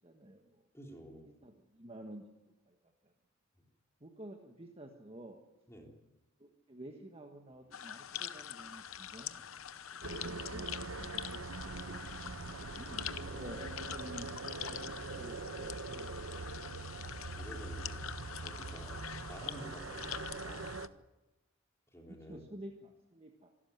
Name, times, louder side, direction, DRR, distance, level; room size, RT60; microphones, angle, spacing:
voice 1, 0.0-0.6 1.4-2.2 2.7-2.8 3.0-3.1 4.0-5.4 6.4-9.4 9.9-12.0 12.7-14.3 14.6-16.3 22.1-23.5, right 1 dB, 30° right, 3 dB, 1.6 m, -51 dB
voice 2, 0.7-1.2 3.6-3.7 5.7-5.9 12.8-13.5 17.3-18.0 18.4-18.9 19.2-20.7 21.9-22.4, equal, 15° left, 1 dB, 3.6 m, -51 dB
sound 1, 7.5-11.5, equal, 10° right, 4.1 m, -69 dB
sound 2, 7.7-20.9, left 10 dB, 80° left, 0.8 m, -45 dB
sound 3, 10.0-20.9, right 3 dB, 80° right, 1.0 m, -43 dB
25.5 x 12.5 x 9.6 m, 0.99 s
head